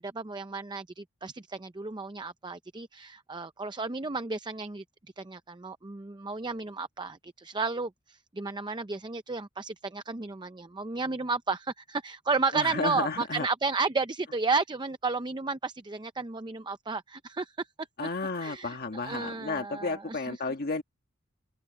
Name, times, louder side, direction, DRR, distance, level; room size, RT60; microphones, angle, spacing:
voice 1, 0.0-4.8 5.2-17.9 18.4-20.4, right 4 dB, 20° right, 0.6 m, -33 dB
voice 2, 12.5-13.5 18.0-20.8, left 3 dB, 50° left, 1.5 m, -32 dB
open air
head